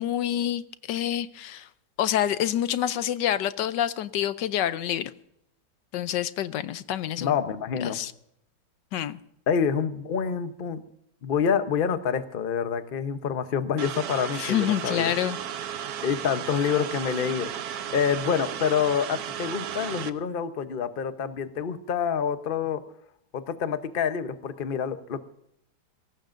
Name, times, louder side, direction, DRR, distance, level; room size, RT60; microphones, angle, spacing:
voice 1, 0.0-1.7 2.0-5.1 5.9-7.3 7.8-8.1 8.9-9.2 14.4-15.4 15.7-15.9, left 11 dB, 80° left, 1.3 m, -27 dB
voice 2, 7.2-8.0 9.5-10.8 11.2-15.1 16.0-17.5 17.9-22.8 23.3-25.2, left 7 dB, 40° left, 0.8 m, -27 dB
sound 1, 13.8-20.1, right 9 dB, 65° right, 1.2 m, -34 dB
22.0 x 17.5 x 2.6 m
omnidirectional pair, 1.9 m